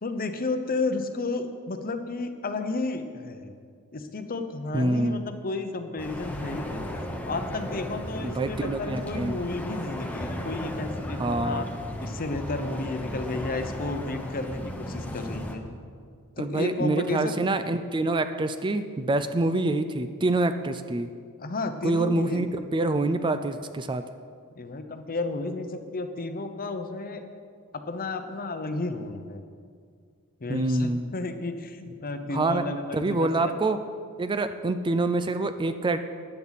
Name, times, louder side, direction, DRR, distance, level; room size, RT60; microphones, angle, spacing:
voice 1, 0.0-3.5 3.9-6.9 7.3-11.7 12.0-15.6 16.4-17.4 21.4-22.5 24.6-27.2 27.7-29.4 30.4-33.5, left 3 dB, 40° left, 7 dB, 0.8 m, -32 dB
voice 2, 4.7-5.3 8.2-9.4 11.2-11.7 16.4-21.1 21.8-24.0 30.5-31.1 32.3-32.6 32.9-33.8 34.2-36.0, right 2 dB, 20° right, 9 dB, 0.4 m, -26 dB
sound 1, 6.0-15.6, equal, 5° left, 1.0 m, -35 dB
14.5 x 10.0 x 4.1 m, 2.1 s
head